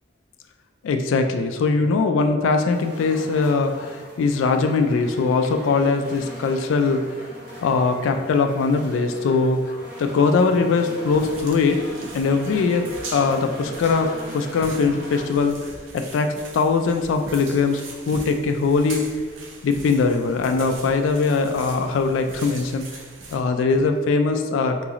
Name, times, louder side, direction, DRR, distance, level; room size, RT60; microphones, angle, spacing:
voice 1, 0.8-7.0 7.6-9.6 10.0-11.8 12.1-15.6 15.9-16.3 16.5-19.0 19.6-22.9 23.3-24.9, left 4 dB, 85° left, 7 dB, 0.3 m, -21 dB
sound 1, 2.7-15.2, right 1 dB, 50° right, 1.3 m, -40 dB
sound 2, 11.1-23.4, right 2 dB, 85° right, 0.5 m, -40 dB
3.9 x 2.9 x 2.4 m, 1.5 s
head